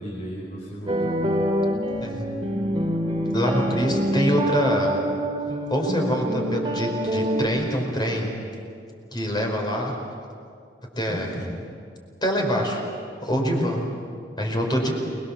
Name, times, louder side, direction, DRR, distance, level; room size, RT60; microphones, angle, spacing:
voice 1, 0.0-1.5 11.1-11.6 13.3-13.7, equal, 45° left, -4 dB, 4.8 m, -33 dB
sound 1, 0.9-7.5, equal, 25° right, 2.5 m, -26 dB
voice 2, 3.3-5.0 5.7-8.3 9.1-9.9 10.9-11.3 12.2-12.8 13.2-13.8 14.4-14.9, equal, 25° left, 1 dB, 4.9 m, -25 dB
29.0 x 22.0 x 7.3 m, 2.3 s
head